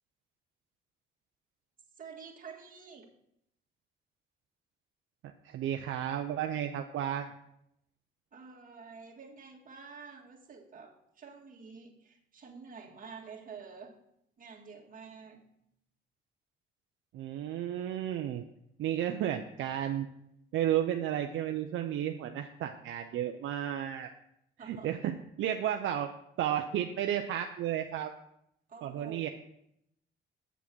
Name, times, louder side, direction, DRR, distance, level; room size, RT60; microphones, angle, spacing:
voice 1, 2.0-3.1 8.3-14.0 14.4-15.4 24.6-24.9 28.7-29.3, right 5 dB, 45° right, 0 dB, 1.9 m, -49 dB
voice 2, 5.4-7.3 17.1-18.4 18.8-20.1 20.5-24.1 24.6-26.1 26.4-28.1 28.8-29.3, right 10 dB, 80° right, 5 dB, 0.6 m, -33 dB
8.2 x 6.0 x 6.1 m, 0.77 s
cardioid pair, 90°, 20 cm